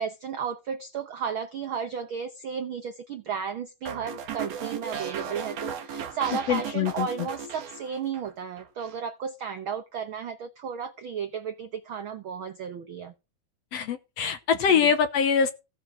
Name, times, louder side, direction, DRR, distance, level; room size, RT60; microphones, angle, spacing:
voice 1, 0.0-13.1 14.7-14.9, right 7 dB, 75° right, 1.1 m, -34 dB
sound 1, 3.9-8.3 8.6-9.0, right 7 dB, 60° right, 2.3 m, -36 dB
voice 2, 6.5-7.1 13.7-15.5, left 7 dB, 65° left, 1.7 m, -23 dB
16.0 x 6.3 x 6.1 m
omnidirectional pair, 3.6 m